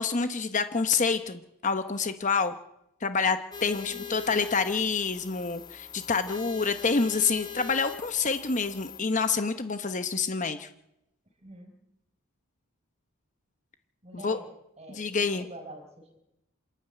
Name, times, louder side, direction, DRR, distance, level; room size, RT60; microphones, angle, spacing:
voice 1, 0.0-2.5 3.0-10.7 14.1-14.4 14.9-15.5, left 4 dB, 35° left, 9 dB, 1.0 m, -27 dB
sound 1, 3.5-9.0, left 8 dB, 20° left, 2.8 m, -42 dB
voice 2, 3.8-4.3 11.4-11.7 14.0-16.2, right 1 dB, 30° right, 5 dB, 4.9 m, -47 dB
27.5 x 11.0 x 9.3 m, 0.85 s
head